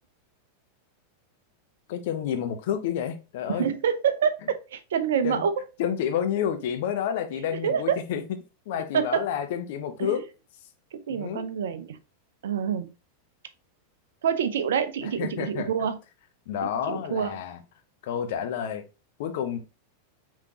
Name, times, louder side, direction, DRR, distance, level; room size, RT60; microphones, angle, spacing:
voice 1, 1.9-3.7 5.2-5.4 5.8-8.2 8.7-10.2 11.1-11.5 15.2-15.7 16.5-17.6 18.0-18.8 19.2-19.6, left 9 dB, 50° left, 0.7 m, -29 dB
voice 2, 3.5-5.5 7.6-8.0 8.9-9.2 10.0-10.1 10.9-12.0 12.4-12.9 14.2-16.0 16.9-17.3, right 7 dB, 60° right, 0.5 m, -26 dB
5.0 x 3.6 x 2.8 m
figure-of-eight pair, 90°, 0 cm